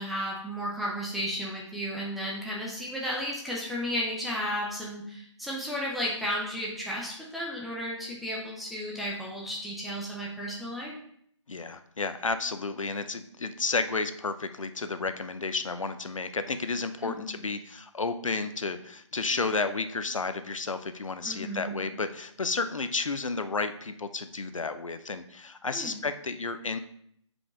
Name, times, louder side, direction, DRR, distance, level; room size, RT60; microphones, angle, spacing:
voice 1, 0.0-10.9 17.0-17.4 21.2-21.8 25.7-26.0, equal, ahead, -5 dB, 0.5 m, -33 dB
voice 2, 11.5-26.8, left 4 dB, 90° left, 10 dB, 0.7 m, -32 dB
6.0 x 4.9 x 3.7 m, 0.67 s
figure-of-eight pair, 155°, 16 cm